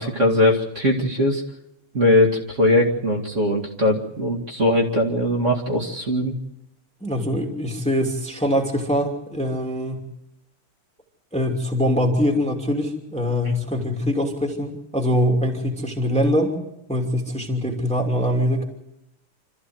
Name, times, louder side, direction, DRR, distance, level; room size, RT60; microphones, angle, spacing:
voice 1, 0.0-1.4 1.9-6.4, left 1 dB, 35° right, -2 dB, 2.5 m, -20 dB
voice 2, 7.0-10.0 11.3-16.5 16.9-18.6, equal, 5° left, 1 dB, 2.5 m, -23 dB
26.5 x 14.0 x 7.9 m, 0.90 s
omnidirectional pair, 2.4 m